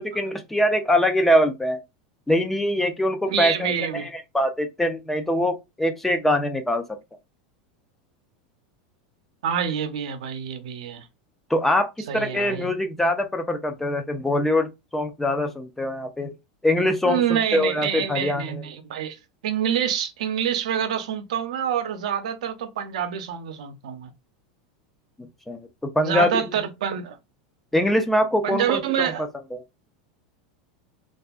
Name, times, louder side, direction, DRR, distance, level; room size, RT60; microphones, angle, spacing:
voice 1, 0.0-1.8 2.3-6.8 11.5-16.3 16.6-18.7 25.5-25.7 26.0-26.4 27.7-29.1 29.5-29.6, left 1 dB, 5° left, 0.4 m, -23 dB
voice 2, 3.3-4.1 9.4-11.1 12.1-12.7 17.0-24.1 26.0-27.2 28.4-29.2, right 8 dB, 85° right, 0.5 m, -27 dB
2.6 x 2.4 x 2.3 m
supercardioid pair, 140°, 3 cm